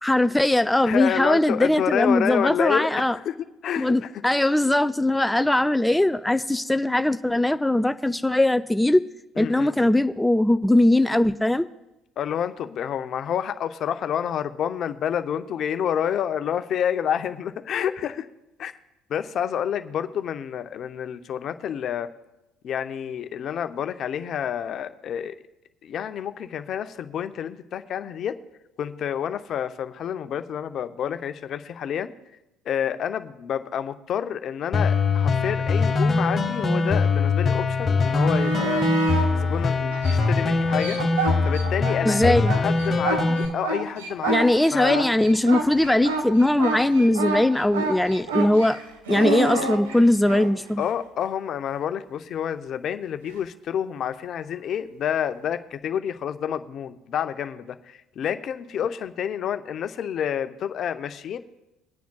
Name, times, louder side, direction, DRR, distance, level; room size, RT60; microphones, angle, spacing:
voice 1, 0.0-3.2 3.8-9.0 9.4-11.7 42.0-42.5 44.3-48.8 49.1-50.8, left 1 dB, 5° left, 11 dB, 0.4 m, -20 dB
voice 2, 0.9-3.4 3.6-4.1 9.4-9.9 12.2-18.3 18.6-18.7 19.1-22.1 22.6-25.3 25.8-28.4 28.8-32.1 32.7-38.9 39.3-41.0 41.4-45.0 49.3-49.4 50.8-61.4, left 9 dB, 55° left, 10 dB, 0.6 m, -29 dB
sound 1, 34.7-43.4, left 4 dB, 35° left, 1.6 m, -22 dB
sound 2, 38.1-39.3 39.9-42.0 42.3-50.5 53.3-53.4, right 4 dB, 85° right, 1.2 m, -28 dB
23.5 x 9.2 x 2.3 m, 0.96 s
hypercardioid pair, 60°, 0 cm